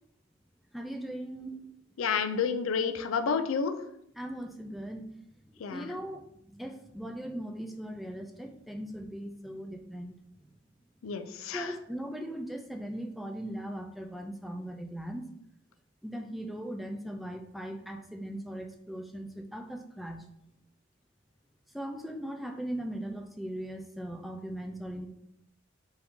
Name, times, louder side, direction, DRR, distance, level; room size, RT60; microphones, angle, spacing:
voice 1, 0.7-1.7 4.2-5.1 5.7-10.1 11.5-15.3 16.0-20.2 21.7-25.1, right 1 dB, ahead, 4 dB, 0.4 m, -39 dB
voice 2, 2.0-3.7 5.6-5.8 11.0-11.7, left 6 dB, 85° left, 9 dB, 0.4 m, -30 dB
4.6 x 2.7 x 3.6 m, 0.76 s
head